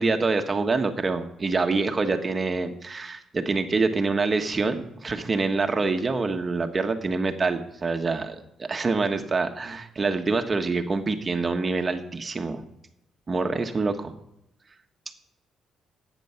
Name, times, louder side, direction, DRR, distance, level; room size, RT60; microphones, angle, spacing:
voice 1, 0.0-12.6 13.3-14.1, right 3 dB, 30° right, 6 dB, 1.4 m, -26 dB
14.5 x 9.4 x 5.8 m, 0.83 s
cardioid pair, 90°, 0 cm